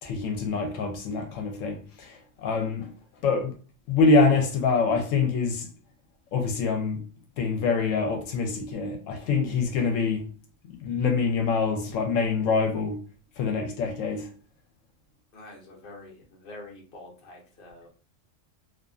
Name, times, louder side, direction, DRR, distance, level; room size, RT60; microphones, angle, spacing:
voice 1, 0.0-2.9 3.2-3.5 3.9-5.7 6.3-7.0 7.4-10.2 10.8-13.0 13.4-14.3, left 4 dB, 90° left, 1.0 m, -25 dB
voice 2, 15.3-17.9, left 2 dB, 50° left, 0.9 m, -46 dB
2.4 x 2.4 x 2.3 m
omnidirectional pair, 1.3 m